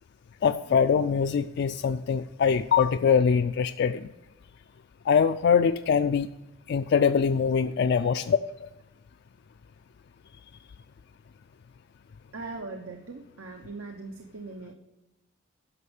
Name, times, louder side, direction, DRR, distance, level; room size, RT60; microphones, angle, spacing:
voice 1, 0.4-4.1 5.1-6.3 6.7-8.7, left 6 dB, 50° left, 9 dB, 0.3 m, -23 dB
voice 2, 12.3-14.7, right 3 dB, 85° right, 3 dB, 0.9 m, -40 dB
11.0 x 6.3 x 7.0 m, 0.97 s
head